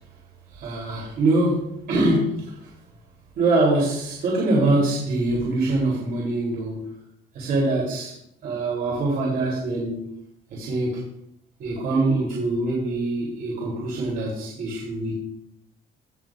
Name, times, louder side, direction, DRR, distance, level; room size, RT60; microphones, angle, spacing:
voice 1, 0.5-2.4 3.4-6.8 7.3-8.1 8.4-10.0 10.5-11.0 11.6-15.1, right 2 dB, 65° right, -4 dB, 3.2 m, -24 dB
16.5 x 6.9 x 2.5 m, 0.77 s
cardioid pair, 110°, 17 cm